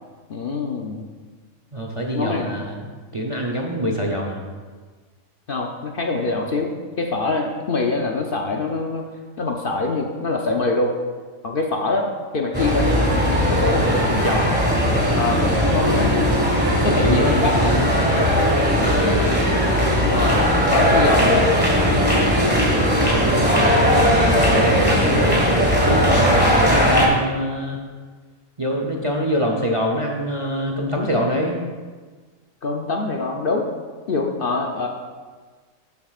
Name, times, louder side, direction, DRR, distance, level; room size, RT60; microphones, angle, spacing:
voice 1, 0.3-1.0 2.1-2.6 5.5-6.7 7.0-9.0 9.4-10.9 11.4-12.1 12.3-13.0 13.4-14.5 15.1-16.3 16.8-17.8 20.0-21.5 22.7-23.1 26.8-27.2 32.6-33.6 34.1-34.9, left 3 dB, 50° left, 2 dB, 0.8 m, -24 dB
voice 2, 1.7-2.8 3.1-4.4 15.7-16.0 16.8-17.9 18.7-19.5 22.6-27.8 28.6-31.6, equal, 30° right, 0 dB, 0.6 m, -25 dB
sound 1, 12.5-27.1, equal, 10° right, 1.5 m, -18 dB
12.5 x 7.2 x 2.4 m, 1.4 s
omnidirectional pair, 1.4 m